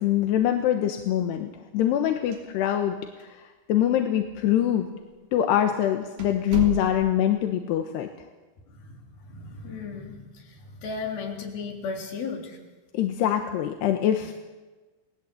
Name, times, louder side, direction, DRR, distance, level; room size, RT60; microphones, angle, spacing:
voice 1, 0.0-3.4 3.7-4.9 5.3-8.1 12.9-14.3, left 11 dB, 85° left, 5 dB, 3.3 m, -24 dB
sound 1, 2.3-2.9 3.2-3.3 4.1-4.2 4.9-5.1 5.5-5.6 6.2-7.3, right 9 dB, 60° right, 4.7 m, -35 dB
voice 2, 8.7-12.6 14.2-14.3, left 4 dB, 60° left, 2 dB, 5.2 m, -36 dB
29.5 x 20.0 x 8.4 m, 1.3 s
omnidirectional pair, 4.8 m